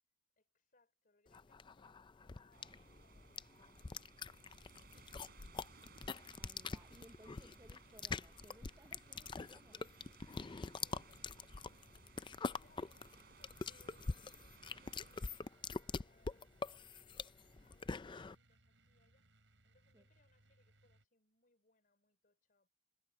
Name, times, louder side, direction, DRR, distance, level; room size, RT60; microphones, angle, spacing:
voice 1, 0.4-5.6 10.3-22.7, left 2 dB, 50° left, 5.7 m, -75 dB
sound 1, 1.3-18.4, left 4 dB, 25° left, 0.4 m, -45 dB
sound 2, 2.5-15.4, right 4 dB, 60° right, 4.6 m, -63 dB
sound 3, 4.4-21.0, right 2 dB, 85° right, 5.8 m, -71 dB
voice 2, 6.4-9.9 19.9-20.0, right 1 dB, 20° right, 0.6 m, -63 dB
head